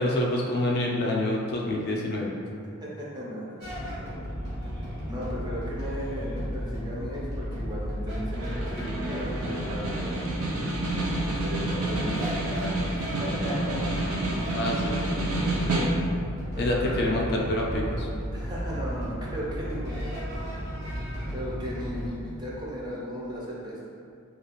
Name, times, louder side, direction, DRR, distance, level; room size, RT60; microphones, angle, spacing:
voice 1, 0.0-2.3 14.5-15.2 16.6-18.1, left 1 dB, 50° left, -2 dB, 0.3 m, -27 dB
voice 2, 2.8-4.3 5.1-10.3 11.4-12.9 13.2-13.8 15.7-16.0 16.5-17.1 18.3-20.4 21.3-23.8, equal, 20° right, -6 dB, 0.5 m, -36 dB
sound 1, 3.6-22.1, equal, 50° right, 0.8 m, -34 dB
Snare drum, 8.3-16.3, right 2 dB, 90° right, 0.5 m, -30 dB
2.3 x 2.3 x 3.0 m, 2.3 s
head